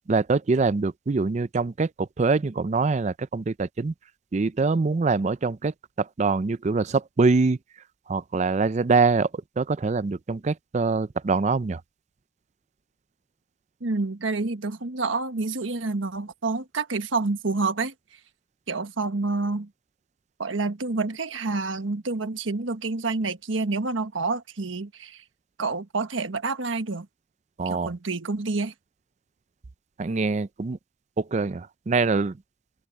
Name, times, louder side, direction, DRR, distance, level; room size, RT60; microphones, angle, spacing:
voice 1, 0.1-3.9 4.3-7.6 8.1-9.3 9.6-11.8 27.6-27.9 30.0-30.8 31.2-32.4, right 4 dB, 35° right, 0.4 m, -24 dB
voice 2, 13.8-17.9 18.7-19.7 20.4-25.2 25.6-27.1 27.6-28.7, right 3 dB, 85° right, 1.3 m, -28 dB
open air
head